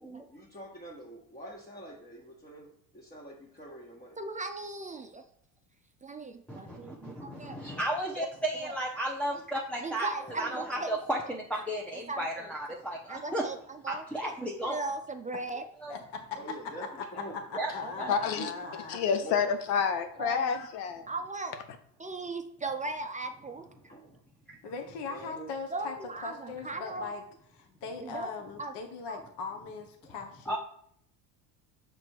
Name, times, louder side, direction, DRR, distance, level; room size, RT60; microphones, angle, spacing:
voice 1, 0.3-4.2 10.2-10.8 16.3-17.4 17.7-17.8 18.3-18.5 19.1-19.5 23.9-24.2 25.1-25.5, right 1 dB, 20° left, -4 dB, 1.5 m, -45 dB
voice 2, 4.2-5.2 6.0-7.6 8.6-8.8 9.8-11.0 12.1-12.8 13.1-14.3 14.6-15.6 17.8-18.3 18.6-18.8 20.2-20.5 21.1-21.5 22.0-23.6 25.7-27.1 28.0-28.3 28.6-28.7 29.1-29.2, right 3 dB, 15° right, 6 dB, 0.5 m, -38 dB
voice 3, 6.5-10.1 10.4-13.4 13.9-14.8 15.8-15.9 17.2-17.3 17.5-17.7 18.0-18.1 24.5-24.6 30.5-30.6, right 1 dB, 5° left, -2 dB, 0.8 m, -34 dB
voice 4, 15.9-16.6 17.3-19.0 24.6-25.9 26.2-27.2 27.5-30.6, left 4 dB, 55° left, 4 dB, 1.2 m, -39 dB
voice 5, 18.1-18.5 18.9-21.1, left 6 dB, 80° left, 9 dB, 1.1 m, -29 dB
6.0 x 3.5 x 4.6 m, 0.67 s
supercardioid pair, 90°, 49 cm